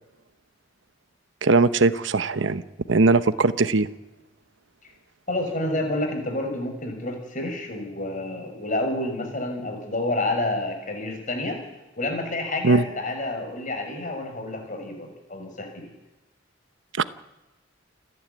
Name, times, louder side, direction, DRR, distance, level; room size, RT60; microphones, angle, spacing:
voice 1, 1.4-2.6 2.9-3.9 12.6-12.8 17.0-17.1, right 3 dB, 70° right, 13 dB, 0.9 m, -19 dB
voice 2, 5.3-11.6 12.0-15.9, left 2 dB, 40° left, 4 dB, 6.0 m, -29 dB
29.0 x 11.0 x 9.6 m, 1.1 s
head